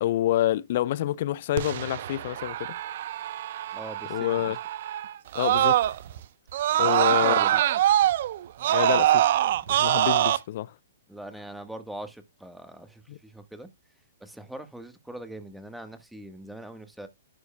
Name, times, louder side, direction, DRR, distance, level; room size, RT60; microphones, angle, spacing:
voice 1, 0.0-2.8 4.1-4.6 5.3-5.8 6.8-7.4 8.7-9.3 9.7-10.7 13.1-13.2, left 13 dB, 50° left, 0.5 m, -27 dB
Screaming, 1.6-6.2 6.5-10.4, right 12 dB, 55° right, 0.7 m, -24 dB
voice 2, 3.7-4.5 6.8-7.6 11.1-13.7 14.2-17.1, right 1 dB, 5° right, 1.3 m, -41 dB
11.5 x 6.9 x 2.2 m
hypercardioid pair, 120°, 0 cm